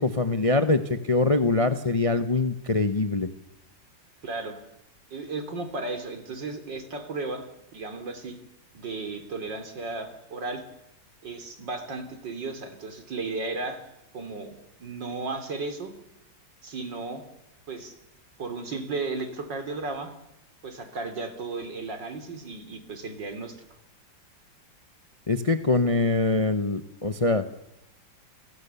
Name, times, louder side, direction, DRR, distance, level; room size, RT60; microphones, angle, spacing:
voice 1, 0.0-3.3 25.3-27.5, left 3 dB, 25° left, 10 dB, 0.7 m, -23 dB
voice 2, 4.2-4.6 5.1-7.5 7.7-8.4 8.7-10.6 11.2-13.8 14.1-15.9 16.6-17.2 17.7-17.9 18.4-20.1 20.6-23.6, right 3 dB, 75° right, 7 dB, 3.9 m, -34 dB
29.0 x 19.0 x 7.0 m, 0.87 s
omnidirectional pair, 2.0 m